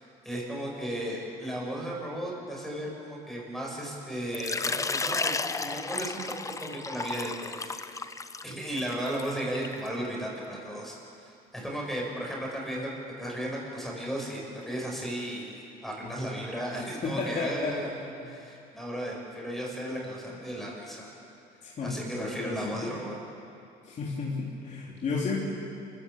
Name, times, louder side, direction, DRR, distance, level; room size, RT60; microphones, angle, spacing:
voice 1, 0.0-7.6 7.9-8.1 8.4-12.9 13.2-18.0 18.2-21.1 21.8-23.2, right 1 dB, ahead, -3 dB, 6.8 m, -35 dB
Water / Liquid, 4.3-9.9, left 3 dB, 20° left, 0.8 m, -33 dB
voice 2, 17.0-17.8 18.2-18.3 21.6-23.0 23.8-25.4, left 4 dB, 45° left, -4 dB, 3.6 m, -33 dB
28.0 x 15.0 x 8.5 m, 2.7 s
cardioid pair, 110°, 17 cm